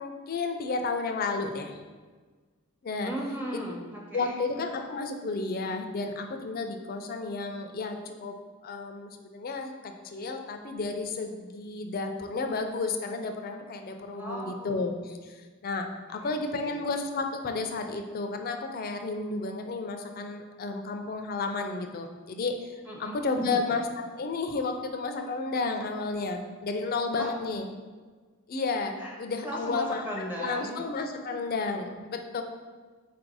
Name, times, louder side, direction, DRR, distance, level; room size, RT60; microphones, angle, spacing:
voice 1, 0.0-1.7 2.8-3.1 3.5-3.6 4.1-8.4 8.6-15.2 15.6-22.6 23.0-27.7 28.5-32.4, left 3 dB, 40° left, 6 dB, 0.4 m, -32 dB
voice 2, 3.0-4.4 14.1-14.9 16.1-16.9 22.9-23.2 27.1-27.3 29.0-29.2 29.4-30.9, right 1 dB, 10° right, -2 dB, 0.5 m, -37 dB
4.2 x 2.6 x 4.6 m, 1.4 s
head